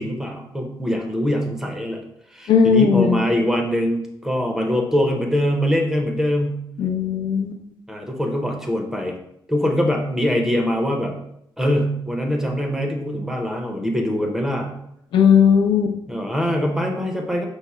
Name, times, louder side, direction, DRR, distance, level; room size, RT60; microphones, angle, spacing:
voice 1, 0.0-2.0 2.3-6.6 7.9-9.2 9.5-11.1 11.6-14.7 16.1-17.5, equal, 5° right, 2 dB, 0.6 m, -23 dB
voice 2, 2.5-3.2 6.8-7.6 15.1-16.0, left 7 dB, 80° left, 4 dB, 0.6 m, -17 dB
5.4 x 2.0 x 4.6 m, 0.77 s
cardioid pair, 145°, 8 cm